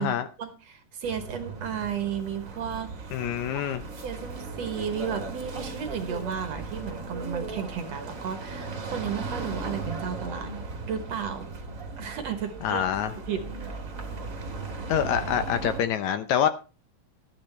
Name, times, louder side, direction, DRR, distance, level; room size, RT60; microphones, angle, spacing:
voice 1, 0.0-3.2 3.5-3.6 4.0-11.5 12.0-12.8 13.3-13.8, right 7 dB, 60° right, 2.0 m, -34 dB
sound 1, 1.0-15.8, right 3 dB, 30° right, 1.6 m, -37 dB
voice 2, 3.1-3.8 12.6-13.1 14.9-16.5, left 9 dB, 75° left, 1.9 m, -26 dB
12.5 x 10.5 x 4.3 m
omnidirectional pair, 3.8 m